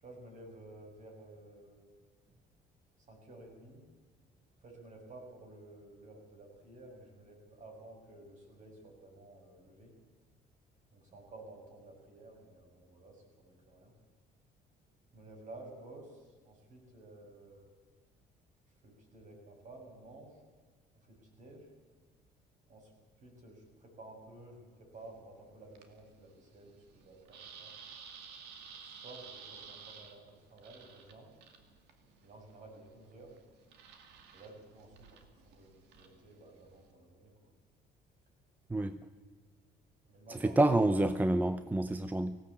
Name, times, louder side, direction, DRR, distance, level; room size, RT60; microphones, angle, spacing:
voice 1, 0.0-1.9 3.1-3.9 4.6-9.9 10.9-14.0 15.1-17.7 18.8-20.4 21.0-21.7 22.7-22.9 23.2-27.8 28.8-31.3 32.2-33.3 34.3-35.2 35.5-37.3 40.1-40.6 40.9-41.1, right 2 dB, 50° right, 7.0 m, -53 dB
sound 1, 24.9-36.9, right 6 dB, 90° right, 2.3 m, -54 dB
voice 2, 40.4-42.4, right 2 dB, 10° right, 0.6 m, -28 dB
18.5 x 16.5 x 8.8 m
cardioid pair, 110°, 17 cm